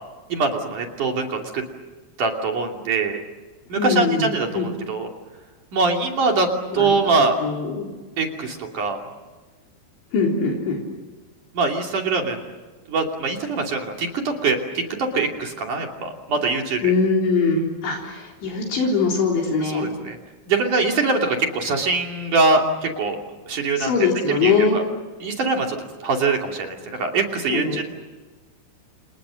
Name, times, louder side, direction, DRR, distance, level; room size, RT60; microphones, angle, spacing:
voice 1, 0.3-1.6 2.2-3.2 3.7-5.1 5.7-6.5 6.7-7.4 8.2-9.0 11.5-12.4 12.9-16.9 19.6-20.2 20.5-23.2 23.5-23.9 24.3-24.8 25.2-27.8, right 3 dB, 45° right, 2 dB, 3.9 m, -23 dB
voice 2, 3.8-4.7 6.7-7.9 10.1-10.8 16.8-19.9 23.8-24.8 27.5-27.8, left 4 dB, 70° left, -1 dB, 6.1 m, -22 dB
30.0 x 30.0 x 6.4 m, 1.2 s
omnidirectional pair, 5.4 m